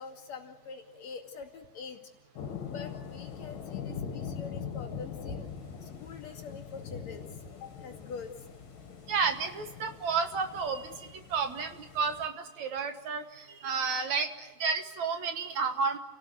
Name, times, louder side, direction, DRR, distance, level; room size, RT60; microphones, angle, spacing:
voice 1, 0.0-2.0 2.7-5.5 5.8-8.5, left 5 dB, 55° left, 1 dB, 3.5 m, -45 dB
sound 1, 2.4-12.3, left 7 dB, 75° left, 3.7 m, -42 dB
voice 2, 9.1-16.0, right 5 dB, 65° right, 7 dB, 2.3 m, -31 dB
30.0 x 18.5 x 8.1 m, 1.3 s
omnidirectional pair, 4.0 m